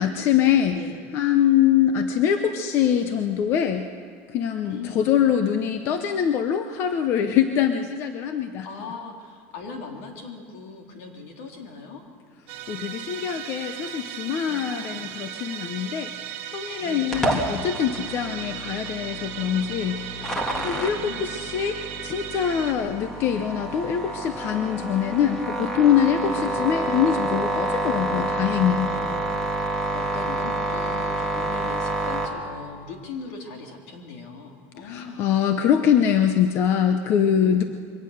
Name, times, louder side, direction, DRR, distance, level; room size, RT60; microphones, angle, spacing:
voice 1, 0.0-0.8 1.1-3.9 4.3-8.7 12.7-16.1 16.5-20.2 20.6-28.9 34.8-37.6, left 9 dB, 35° left, 7 dB, 0.7 m, -23 dB
voice 2, 4.6-5.0 8.6-12.0 14.5-14.9 16.8-17.3 20.4-21.3 26.2-26.5 28.9-35.3 37.1-37.6, left 4 dB, 65° left, 2 dB, 3.3 m, -39 dB
Musical instrument, 12.5-22.7, right 10 dB, 55° right, 1.9 m, -36 dB
sound 1, 17.1-32.3, right 1 dB, 10° left, 1.7 m, -28 dB
23.0 x 18.0 x 6.5 m, 2.1 s
cardioid pair, 180°, 7 cm